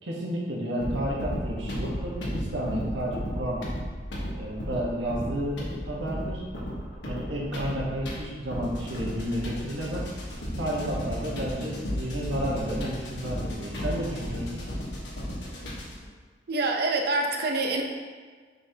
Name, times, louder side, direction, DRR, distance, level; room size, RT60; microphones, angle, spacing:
voice 1, 0.0-3.6 4.3-6.4 7.0-10.1 10.6-14.6, equal, 85° right, -4 dB, 1.4 m, -31 dB
sound 1, 0.8-16.1, equal, 75° left, 1.4 m, -34 dB
voice 2, 16.5-17.8, right 2 dB, 60° right, 2 dB, 0.8 m, -26 dB
6.4 x 5.6 x 2.9 m, 1.5 s
head